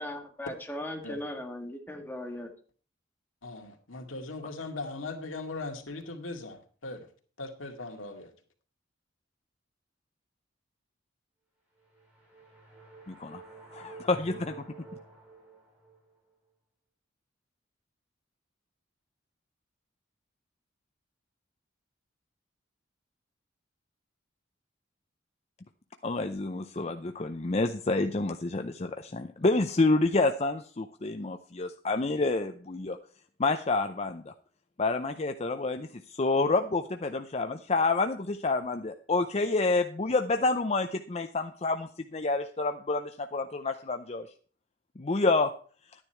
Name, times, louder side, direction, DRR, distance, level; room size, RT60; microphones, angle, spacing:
voice 1, 0.0-2.5, left 1 dB, 10° left, 1.8 m, -38 dB
voice 2, 3.4-7.1 7.4-8.3, left 3 dB, 90° left, 2.2 m, -39 dB
sound 1, 11.8-16.1, right 3 dB, 5° right, 4.8 m, -49 dB
voice 3, 13.1-13.4 13.7-14.6 26.0-33.0 33.4-34.3 34.8-44.3 45.0-45.5, left 3 dB, 35° left, 0.6 m, -28 dB
12.0 x 10.0 x 4.5 m
head